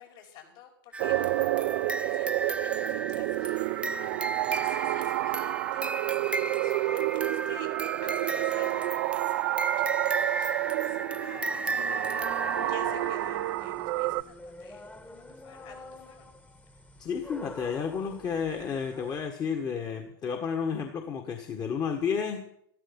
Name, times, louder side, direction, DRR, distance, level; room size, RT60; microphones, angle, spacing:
voice 1, 0.0-1.8 2.1-7.7 8.0-12.3 12.6-16.5, left 8 dB, 60° left, 2 dB, 5.3 m, -52 dB
sound 1, 0.9-13.5, right 3 dB, 10° right, 0.5 m, -35 dB
sound 2, 1.0-14.2, right 18 dB, 60° right, 0.5 m, -29 dB
sound 3, 10.9-19.3, left 3 dB, 10° left, 1.3 m, -46 dB
voice 2, 17.0-22.5, left 6 dB, 35° left, 4 dB, 1.6 m, -31 dB
13.5 x 13.0 x 5.5 m, 0.71 s
hypercardioid pair, 100°, 12 cm